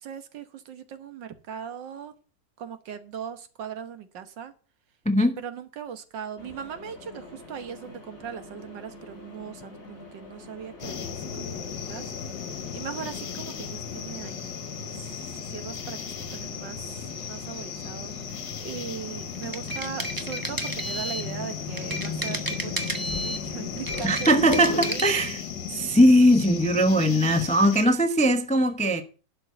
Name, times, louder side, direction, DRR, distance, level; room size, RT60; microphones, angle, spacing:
voice 1, 0.0-2.1 2.6-4.5 5.4-12.1 12.7-14.5 14.8-16.0 16.3-16.8 17.2-18.1 18.6-24.3 24.7-25.0, right 7 dB, 80° right, 1.8 m, -39 dB
voice 2, 5.0-5.4 24.0-25.4 25.7-29.0, equal, 10° left, 0.5 m, -20 dB
Mechanisms, 6.4-24.9, left 3 dB, 45° left, 5.0 m, -43 dB
sound 1, 10.8-27.9, left 7 dB, 75° left, 1.9 m, -36 dB
sound 2, 19.3-21.3 21.8-23.4 23.8-25.3, right 1 dB, 15° right, 0.9 m, -32 dB
11.5 x 5.4 x 8.0 m
omnidirectional pair, 1.9 m